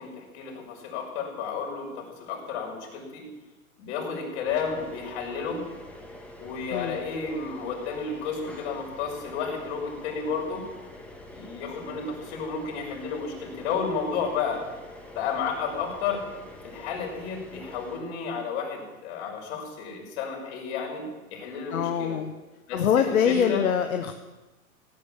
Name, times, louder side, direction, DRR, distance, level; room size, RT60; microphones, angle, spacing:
voice 1, 0.0-3.2 3.8-5.6 6.4-10.6 11.3-14.6 15.1-16.2 16.6-21.0 21.3-22.2 22.7-23.6, left 5 dB, 50° left, 0 dB, 6.2 m, -32 dB
sound 1, 4.4-18.0, left 1 dB, 5° left, 2.4 m, -46 dB
voice 2, 21.7-22.3 22.7-24.1, left 8 dB, 75° left, 6 dB, 1.3 m, -24 dB
17.5 x 9.7 x 7.4 m, 1.1 s
hypercardioid pair, 115°, 42 cm